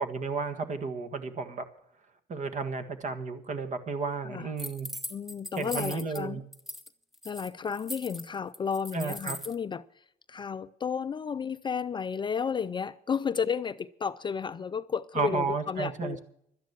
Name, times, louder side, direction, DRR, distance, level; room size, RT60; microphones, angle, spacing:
voice 1, 0.0-1.6 2.3-4.9 5.6-6.4 8.9-9.4 15.1-16.2, right 4 dB, 45° right, 1.7 m, -32 dB
sound 1, 4.6-6.2 6.5-6.9 7.1-9.6, left 1 dB, ahead, 1.1 m, -40 dB
voice 2, 5.1-6.4 7.2-16.2, left 6 dB, 30° left, 0.4 m, -33 dB
12.5 x 10.0 x 7.3 m
cardioid pair, 110°, 17 cm